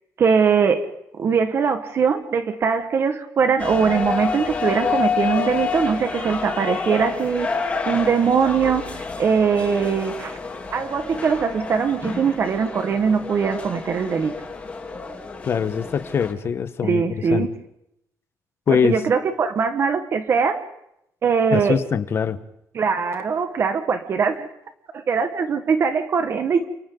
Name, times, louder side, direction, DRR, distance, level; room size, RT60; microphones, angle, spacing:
voice 1, 0.2-7.5 7.8-8.9 9.2-10.4 10.7-14.3 16.8-17.5 18.7-20.6 21.2-21.8 22.7-24.5 24.9-26.7, right 6 dB, 40° right, 7 dB, 1.5 m, -21 dB
sound 1, 3.6-16.3, left 5 dB, 20° left, 3.3 m, -29 dB
voice 2, 15.4-17.0 17.3-17.5 18.7-18.9 21.5-22.4, left 7 dB, 40° left, 12 dB, 1.2 m, -22 dB
29.5 x 28.5 x 3.9 m, 0.79 s
cardioid pair, 160°, 6 cm